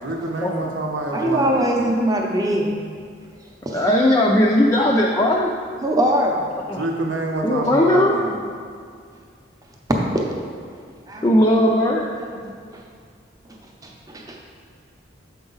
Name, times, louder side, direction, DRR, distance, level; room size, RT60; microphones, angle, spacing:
voice 1, 0.0-1.8 6.7-8.4, right 2 dB, 75° right, 1 dB, 0.8 m, -27 dB
voice 2, 1.1-2.7 3.6-3.8 5.8-6.5 9.9-10.2 11.1-11.3 12.2-12.3 12.7-12.8 13.5-14.4, right 1 dB, 20° right, 0 dB, 0.6 m, -22 dB
voice 3, 3.7-5.5 6.7-6.8 7.4-8.2 11.2-12.1 12.4-12.5, left 1 dB, 20° left, -2 dB, 0.3 m, -18 dB
6.9 x 4.9 x 3.9 m, 2.2 s
head